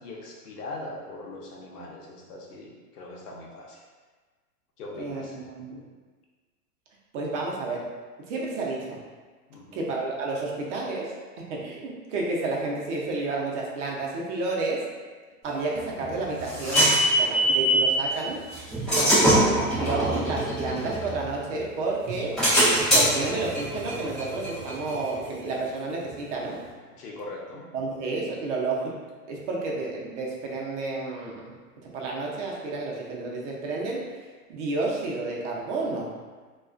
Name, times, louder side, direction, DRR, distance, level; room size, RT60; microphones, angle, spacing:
voice 1, 0.0-3.8 4.8-5.4 5.7-5.9 9.5-9.8 19.0-19.3 27.0-27.7, left 2 dB, 80° left, -2 dB, 0.8 m, -41 dB
voice 2, 4.9-5.7 7.1-7.9 8.2-9.0 9.7-14.8 15.4-18.4 18.9-19.5 19.8-22.4 22.9-26.6 27.7-29.0 29.3-31.5 31.8-34.1 34.5-36.1, right 3 dB, 50° right, -2 dB, 0.6 m, -31 dB
sound 1, 15.8-18.0 18.5-21.6 22.0-25.5, equal, ahead, 0.3 m, -23 dB
2.3 x 2.3 x 2.4 m, 1.4 s
hypercardioid pair, 115°, 46 cm